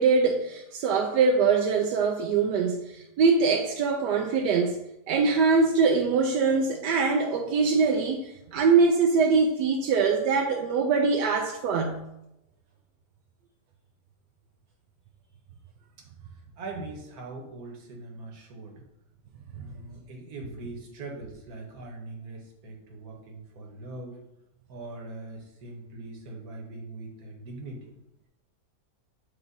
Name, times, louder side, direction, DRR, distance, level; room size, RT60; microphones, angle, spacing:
voice 1, 0.0-4.8 5.1-12.0 19.6-19.7, right 4 dB, 85° right, 1 dB, 1.2 m, -23 dB
voice 2, 16.6-18.8 19.5-24.2 24.7-27.9, right 2 dB, 65° right, 0 dB, 1.6 m, -41 dB
8.1 x 2.9 x 4.0 m, 0.88 s
omnidirectional pair, 1.8 m